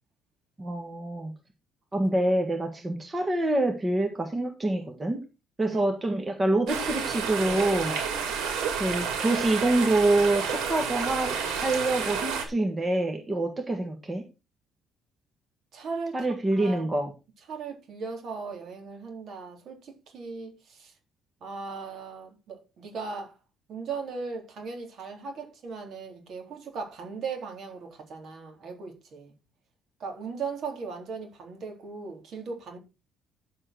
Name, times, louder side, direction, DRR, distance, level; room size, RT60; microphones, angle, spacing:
voice 1, 0.6-1.3 1.9-5.2 5.6-7.9 8.8-14.2 16.1-17.1, right 2 dB, 20° right, 1.6 m, -26 dB
sound 1, 6.7-12.4, right 6 dB, 85° right, 4.2 m, -30 dB
voice 2, 15.7-16.2 16.6-16.9 17.5-20.9 21.4-23.3 23.7-29.3 30.0-32.8, right 4 dB, 50° right, 3.8 m, -38 dB
11.0 x 7.7 x 4.5 m
cardioid pair, 140°, 0 cm